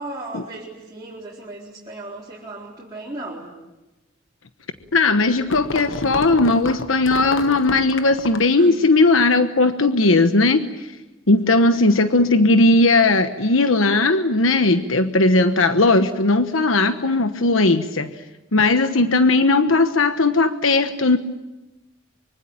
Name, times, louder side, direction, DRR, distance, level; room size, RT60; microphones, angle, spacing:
voice 1, 0.0-3.5 8.6-8.7 11.6-11.7, right 2 dB, 20° right, -5 dB, 4.3 m, -36 dB
sound 1, 4.8-8.6, left 3 dB, 70° left, 1.1 m, -31 dB
voice 2, 4.9-10.7 11.3-18.1 18.5-21.2, left 2 dB, 90° left, 8 dB, 1.2 m, -17 dB
25.0 x 24.5 x 8.9 m, 1.0 s
head